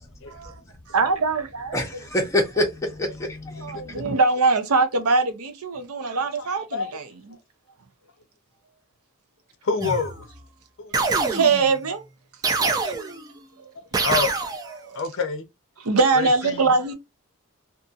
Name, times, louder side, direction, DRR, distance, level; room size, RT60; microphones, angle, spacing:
voice 1, 0.9-2.1 3.6-7.1 11.1-12.0 12.8-12.9 14.9-15.0 15.8-16.9, right 4 dB, 85° right, 0.7 m, -22 dB
voice 2, 1.7-4.0, left 1 dB, 15° left, 0.8 m, -26 dB
voice 3, 6.4-6.9 9.6-10.3 10.8-11.2 12.6-13.0 14.0-14.3 14.9-15.5 16.2-16.9, left 4 dB, 60° left, 0.5 m, -28 dB
sound 1, 9.8-10.3 10.9-11.8 12.4-13.3 13.9-14.8, right 4 dB, 15° right, 0.3 m, -25 dB
2.6 x 2.6 x 2.4 m
head